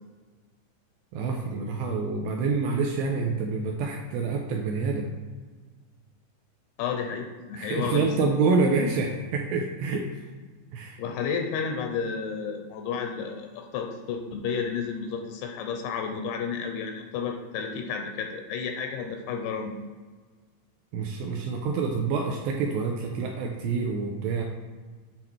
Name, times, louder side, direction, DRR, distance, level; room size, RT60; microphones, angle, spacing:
voice 1, 1.1-5.1 7.6-10.2 10.7-11.0 20.9-24.4, right 4 dB, 85° right, 1 dB, 2.5 m, -27 dB
voice 2, 6.8-8.4 11.0-19.7, left 6 dB, 85° left, 3 dB, 2.7 m, -31 dB
9.2 x 4.1 x 4.4 m, 1.4 s
omnidirectional pair, 5.6 m